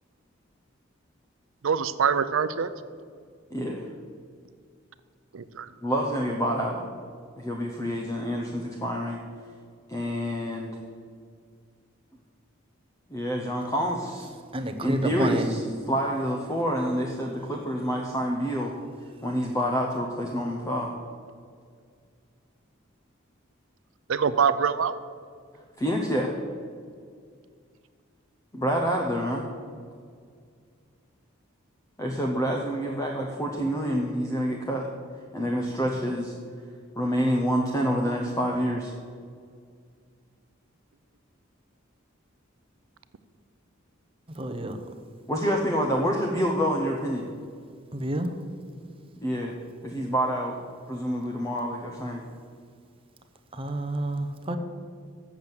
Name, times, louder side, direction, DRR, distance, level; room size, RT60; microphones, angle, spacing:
voice 1, 1.6-2.7 5.3-5.7 24.1-25.0, right 6 dB, 75° right, 0.5 m, -24 dB
voice 2, 3.5-3.9 5.8-6.8 7.4-9.2 9.9-10.7 13.1-14.3 14.8-18.7 19.2-20.9 25.8-26.3 28.5-29.4 32.0-34.9 35.3-36.3 36.9-38.9 45.3-47.3 48.8-48.9 49.2-49.5 49.8-50.6 50.9-52.2, equal, 15° left, 0.7 m, -27 dB
voice 3, 14.5-15.5 44.4-44.8 47.9-48.3 53.5-54.6, right 1 dB, 25° right, 0.7 m, -29 dB
7.3 x 7.2 x 7.9 m
head